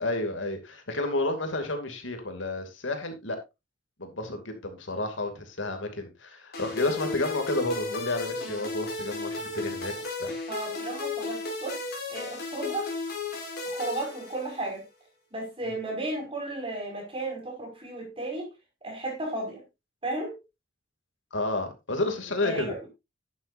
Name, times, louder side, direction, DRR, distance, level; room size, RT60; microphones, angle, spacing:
voice 1, 0.0-3.4 4.0-9.9 10.2-10.3 15.6-15.7 21.3-22.7, left 2 dB, 80° left, 2.6 m, -31 dB
sound 1, 6.5-14.8, left 3 dB, 55° left, 4.9 m, -35 dB
voice 2, 10.5-11.8 12.1-12.9 13.7-14.8 15.3-18.5 18.8-19.6 20.0-20.4 22.4-22.8, right 2 dB, 30° right, 5.6 m, -34 dB
11.5 x 10.5 x 2.6 m
head